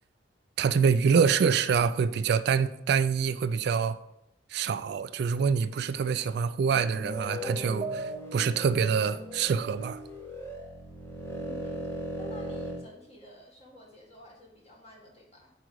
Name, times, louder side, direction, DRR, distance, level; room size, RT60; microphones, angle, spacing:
voice 1, 0.6-4.0 4.5-10.0, right 6 dB, 60° right, 0.3 m, -26 dB
sound 1, 6.6-12.8, right 1 dB, 15° left, 0.9 m, -38 dB
sound 2, 6.6-8.7, right 2 dB, 20° right, 0.7 m, -38 dB
voice 2, 11.4-15.5, left 1 dB, 35° left, 1.7 m, -51 dB
5.0 x 4.8 x 6.2 m
head